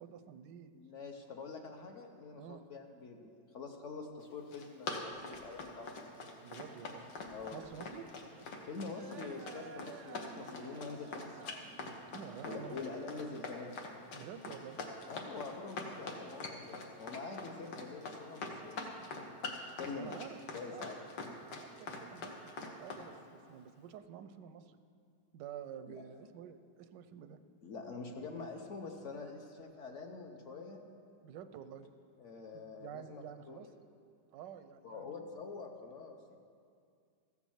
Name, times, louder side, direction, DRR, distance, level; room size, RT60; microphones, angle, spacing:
voice 1, 0.0-0.7 2.4-2.6 6.4-7.1 7.5-8.1 12.1-12.7 14.1-14.8 19.9-20.4 20.7-21.0 21.5-24.8 25.3-27.4 31.2-31.9 32.8-33.7 34.3-35.3, right 8 dB, 90° right, 10 dB, 1.3 m, -49 dB
voice 2, 0.7-6.1 7.3-7.7 8.6-11.3 12.4-13.7 15.1-19.4 19.8-20.2 20.5-21.0 25.9-26.0 27.6-30.8 32.2-33.7 34.8-36.4, left 4 dB, 55° left, 3 dB, 1.0 m, -45 dB
Run, 4.3-23.0, left 3 dB, 75° left, 1.7 m, -44 dB
sound 1, 5.1-15.1, right 6 dB, 65° right, 0.8 m, -56 dB
14.0 x 6.2 x 7.2 m, 2.2 s
omnidirectional pair, 1.9 m